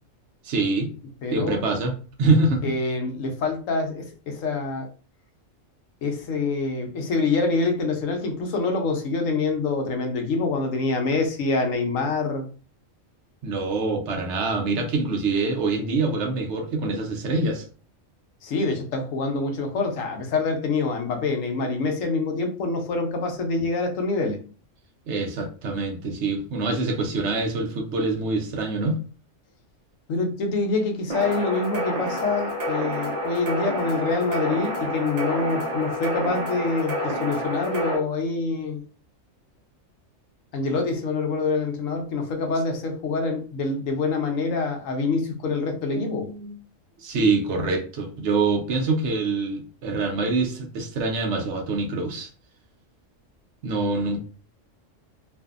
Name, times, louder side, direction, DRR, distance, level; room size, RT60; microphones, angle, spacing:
voice 1, 0.4-0.9 1.3-1.9 2.2-2.7 13.4-17.7 25.1-29.0 45.9-46.6 47.0-52.3 53.6-54.2, right 3 dB, 70° right, 0.9 m, -25 dB
voice 2, 1.2-1.6 2.6-4.9 6.0-12.5 18.4-24.4 30.1-38.8 40.5-46.3, left 3 dB, 85° left, 1.0 m, -26 dB
sound 1, 31.1-38.0, equal, 35° right, 0.8 m, -28 dB
2.5 x 2.5 x 2.4 m
omnidirectional pair, 1.3 m